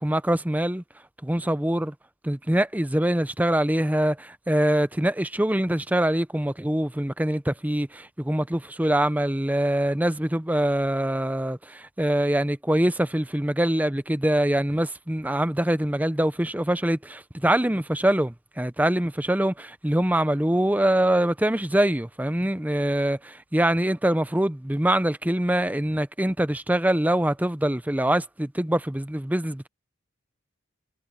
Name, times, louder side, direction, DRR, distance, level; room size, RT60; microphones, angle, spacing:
voice 1, 0.0-0.8 1.2-1.9 2.2-29.7, right 1 dB, 10° right, 0.6 m, -24 dB
head